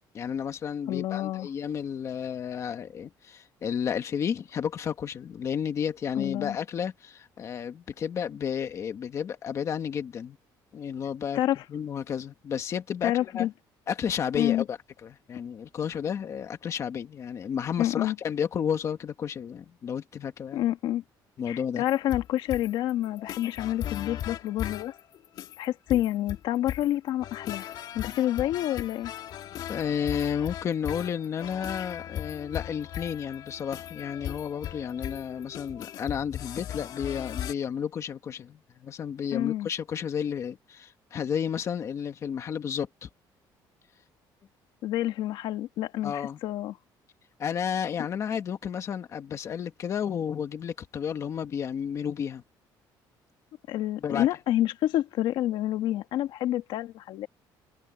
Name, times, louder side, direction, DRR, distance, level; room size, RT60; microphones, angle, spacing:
voice 1, 0.1-10.4 10.7-11.4 11.7-13.5 13.9-20.6 21.4-21.8 29.7-43.1 46.0-46.4 47.4-52.4 54.0-54.3, left 8 dB, 35° left, 1.8 m, -32 dB
voice 2, 0.9-1.5 6.2-6.6 11.4-11.6 13.0-13.5 14.4-14.6 17.8-18.2 20.5-21.0 21.5-24.9 25.6-27.6 27.9-29.1 39.3-39.7 44.8-46.8 53.7-57.3, left 13 dB, 70° left, 1.8 m, -28 dB
sound 1, 21.9-37.5, left 11 dB, 55° left, 2.0 m, -38 dB
cardioid pair, 170°, 9 cm